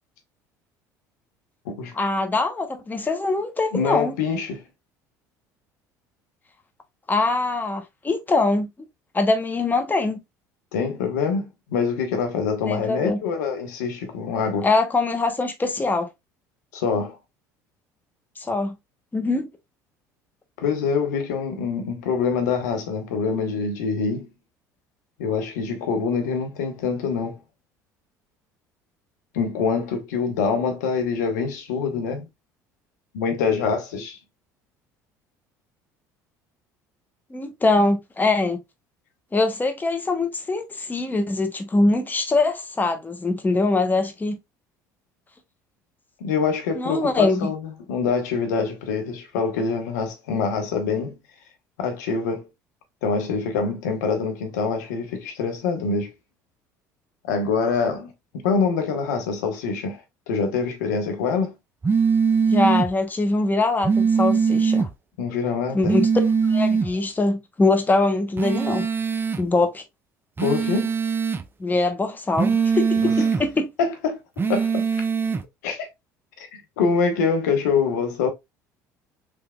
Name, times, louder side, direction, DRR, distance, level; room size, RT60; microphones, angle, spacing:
voice 1, 1.9-4.1 7.1-8.7 9.1-10.2 12.7-13.2 14.6-16.1 18.4-18.8 19.1-19.5 37.3-38.6 39.3-44.4 46.7-47.5 62.5-64.9 65.7-66.1 66.5-68.9 69.4-69.8 71.6-73.7, left 3 dB, 20° left, 0.9 m, -23 dB
voice 2, 3.7-4.6 10.7-14.7 16.7-17.2 20.6-24.3 25.2-27.4 29.3-32.2 33.1-34.2 46.2-47.6 47.9-51.2 51.8-52.4 53.0-56.1 57.3-60.0 60.3-61.5 65.2-66.0 70.4-71.0 73.0-73.1 73.8-74.2 74.5-74.9 75.6-75.9 76.4-78.3, left 5 dB, 80° left, 0.9 m, -25 dB
sound 1, 61.8-62.9 63.8-64.9 65.8-66.9 68.4-69.4 70.4-71.4 72.4-73.4 74.4-75.4, right 6 dB, 25° right, 0.5 m, -21 dB
3.5 x 3.2 x 2.2 m
hypercardioid pair, 70°, 9 cm